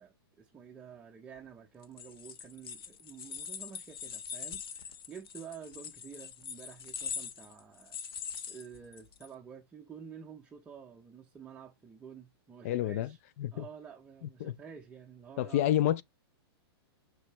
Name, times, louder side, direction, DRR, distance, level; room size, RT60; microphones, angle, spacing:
voice 1, 0.0-8.0 8.5-13.2 13.5-15.7, right 7 dB, 10° right, 0.6 m, -50 dB
sound 1, 1.8-9.3, left 7 dB, 65° left, 1.3 m, -42 dB
voice 2, 12.6-13.1 13.4-13.7 14.4-14.5 15.4-16.0, left 12 dB, 35° left, 0.4 m, -28 dB
6.3 x 6.2 x 3.1 m
hypercardioid pair, 165°, 13 cm